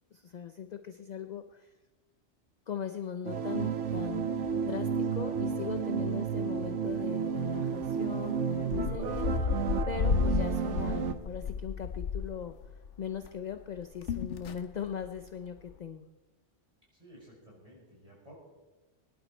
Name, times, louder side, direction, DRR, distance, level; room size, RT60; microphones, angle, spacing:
voice 1, 0.1-1.7 2.7-12.5 13.0-16.1, left 8 dB, 50° left, 8 dB, 0.6 m, -40 dB
sound 1, 3.2-11.1, right 7 dB, 90° right, 1.1 m, -32 dB
sound 2, 3.9-4.6 4.9-5.0 5.3-5.8 6.4-6.6 6.9-7.0 7.8-7.9 8.5-13.3 13.6-15.3 15.6-15.8, left 6 dB, 85° left, 1.2 m, -33 dB
voice 2, 16.9-18.3, equal, 30° right, -4 dB, 6.2 m, -54 dB
21.0 x 11.0 x 4.4 m, 1.2 s
omnidirectional pair, 1.2 m